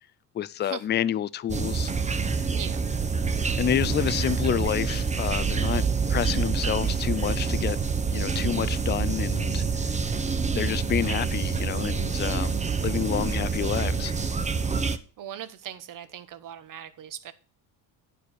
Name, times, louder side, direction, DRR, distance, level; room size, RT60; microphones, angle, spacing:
voice 1, 0.3-1.9 3.6-7.8 8.1-10.0 10.5-12.5 12.8-14.1, left 10 dB, 25° left, 0.4 m, -29 dB
sound 1, 1.5-15.0, right 5 dB, 15° right, 0.8 m, -27 dB
voice 2, 15.2-17.3, right 10 dB, 50° right, 1.1 m, -40 dB
10.0 x 5.0 x 6.3 m
cardioid pair, 100°, 41 cm